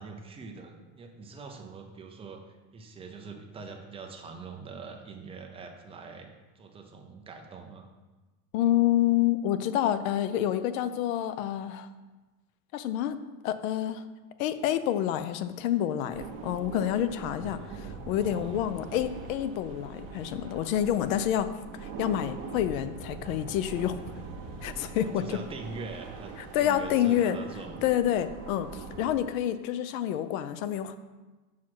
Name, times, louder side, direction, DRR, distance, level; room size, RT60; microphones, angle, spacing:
voice 1, 0.0-7.9 17.4-18.5 24.9-27.8, right 4 dB, 15° right, 3 dB, 0.5 m, -44 dB
voice 2, 8.5-11.9 12.7-14.0 14.4-21.5 21.8-24.0 24.6-25.4 26.5-27.4 27.8-31.0, left 11 dB, 75° left, 12 dB, 0.7 m, -28 dB
sound 1, 16.1-29.2, right 4 dB, 35° right, 1.2 m, -42 dB
6.1 x 4.7 x 5.9 m, 1.2 s
supercardioid pair, 155°, 41 cm